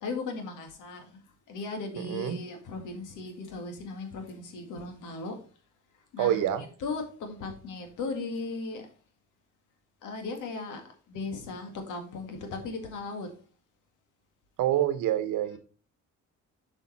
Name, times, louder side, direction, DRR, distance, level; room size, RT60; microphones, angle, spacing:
voice 1, 0.0-1.2 1.5-5.4 6.1-8.9 10.0-13.3, left 3 dB, 85° left, 2.0 m, -37 dB
voice 2, 2.0-2.4 6.2-6.6 14.6-15.6, right 12 dB, 85° right, 0.9 m, -27 dB
7.1 x 5.7 x 4.1 m
cardioid pair, 90°, 30 cm